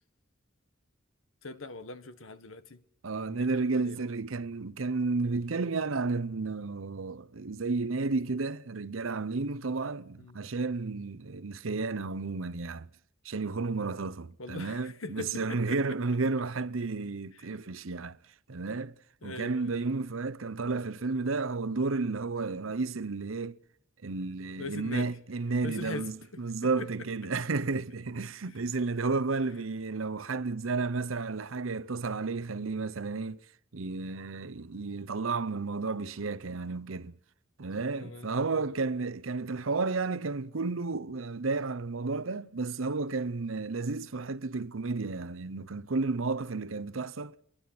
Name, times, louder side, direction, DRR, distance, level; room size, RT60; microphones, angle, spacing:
voice 1, 1.4-2.8 3.3-4.0 10.2-10.4 11.6-11.8 14.4-15.8 17.4-17.5 19.2-19.8 24.6-25.1 25.6-26.1 26.8-26.9 38.0-38.6, left 3 dB, 85° left, 1.6 m, -41 dB
voice 2, 3.0-12.9 13.2-18.2 18.5-18.9 19.2-23.6 24.0-33.4 33.7-37.1 37.6-47.4, right 3 dB, 80° right, 0.8 m, -32 dB
24.5 x 21.5 x 6.0 m
head